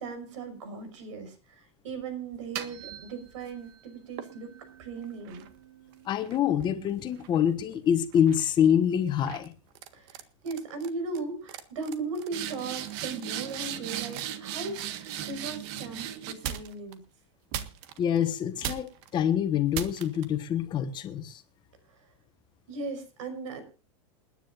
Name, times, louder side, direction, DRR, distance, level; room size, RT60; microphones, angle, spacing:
voice 1, 0.0-4.5 4.8-5.5 9.9-17.0 22.7-23.6, right 4 dB, 85° right, 5.6 m, -37 dB
sound 1, 2.3-3.6 4.2-7.7 8.1-8.5 9.3-9.5 9.7-10.2 10.5-10.9 11.1-11.2 11.5-16.9 17.5-18.2 18.6-19.1 19.7-20.2, right 10 dB, 55° right, 1.6 m, -38 dB
voice 2, 6.1-9.5 18.0-21.4, left 9 dB, 30° left, 1.4 m, -26 dB
28.5 x 10.0 x 2.6 m
supercardioid pair, 150°, 16 cm